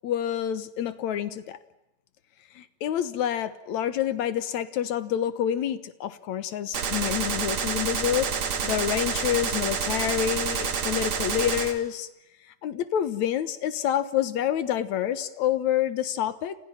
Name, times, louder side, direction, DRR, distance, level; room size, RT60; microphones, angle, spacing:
voice 1, 0.0-1.6 2.6-12.1 12.6-16.6, left 10 dB, 60° left, 13 dB, 2.2 m, -28 dB
Gunshot gunfire, 6.7-11.7, right 6 dB, 50° right, 3.2 m, -28 dB
29.5 x 28.5 x 5.8 m, 0.93 s
omnidirectional pair, 4.2 m